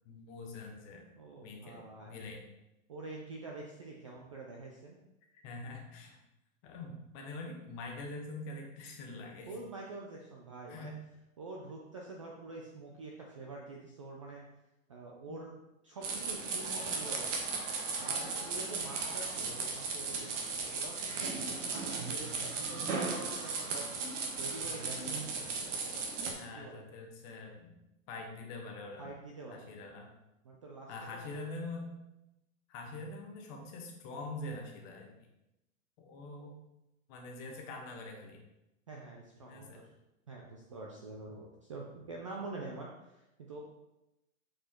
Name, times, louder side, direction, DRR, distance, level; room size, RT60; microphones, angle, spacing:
voice 1, 0.0-1.1 1.4-2.4 5.4-6.2 6.6-9.5 10.7-11.0 15.3-15.4 26.4-27.7 28.1-29.1 29.5-30.1 30.9-31.9 32.7-35.1 36.0-36.6 37.1-38.4 39.4-39.8, left 2 dB, 25° left, 1 dB, 1.1 m, -44 dB
voice 2, 1.2-2.2 2.9-5.0 9.5-10.9 11.4-14.4 14.9-15.5 15.8-17.4 18.0-23.9 24.4-26.0 26.6-26.8 29.0-29.7 30.4-31.6 38.9-39.9 40.3-43.6, right 3 dB, 25° right, -1 dB, 0.4 m, -46 dB
sound 1, 16.0-26.3, right 4 dB, 60° right, 1.6 m, -36 dB
7.3 x 4.7 x 4.3 m, 0.93 s
hypercardioid pair, 165°, 41 cm